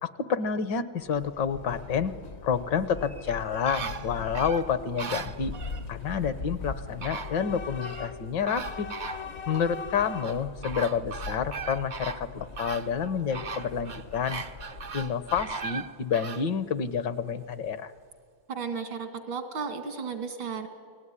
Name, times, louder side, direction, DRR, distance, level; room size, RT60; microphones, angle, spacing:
voice 1, 0.0-2.1 2.4-5.5 5.9-8.9 9.5-14.4 14.9-17.9, left 7 dB, 70° left, 13 dB, 1.6 m, -29 dB
Train / Subway metro underground, 1.0-15.9, left 4 dB, 50° left, 0.8 m, -41 dB
sound 1, 3.0-5.9 6.6-6.7 7.0-8.1 8.5-9.7 10.2-16.5 16.9-17.0, right 5 dB, 70° right, 0.4 m, -38 dB
voice 2, 18.5-20.7, right 5 dB, 85° right, 6 dB, 3.1 m, -34 dB
29.5 x 19.5 x 9.9 m, 2.2 s
omnidirectional pair, 2.1 m